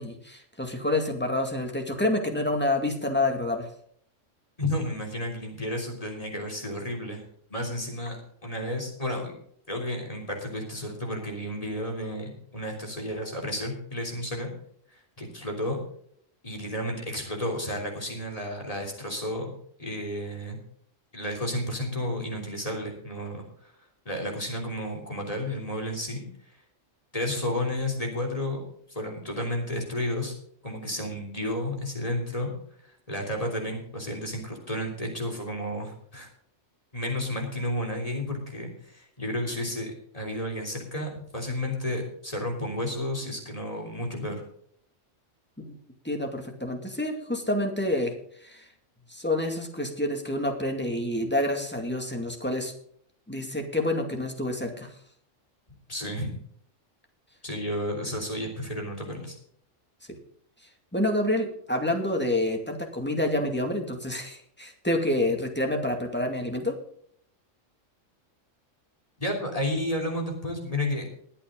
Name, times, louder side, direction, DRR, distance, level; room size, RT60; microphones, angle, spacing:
voice 1, 0.0-3.7 45.6-45.8 46.0-48.1 48.4-48.7 49.1-52.7 53.3-54.9 60.9-66.7, left 1 dB, 10° left, 3 dB, 2.3 m, -28 dB
voice 2, 4.6-7.2 7.5-9.3 9.7-14.5 14.9-15.8 16.4-19.5 19.8-20.6 21.1-23.7 24.1-26.3 27.1-28.6 28.9-30.3 30.6-32.5 33.1-36.3 36.9-44.4 55.9-56.3 57.4-59.4 69.2-71.1, left 1 dB, 30° left, 1 dB, 3.5 m, -32 dB
21.5 x 8.4 x 3.9 m, 0.63 s
omnidirectional pair, 1.3 m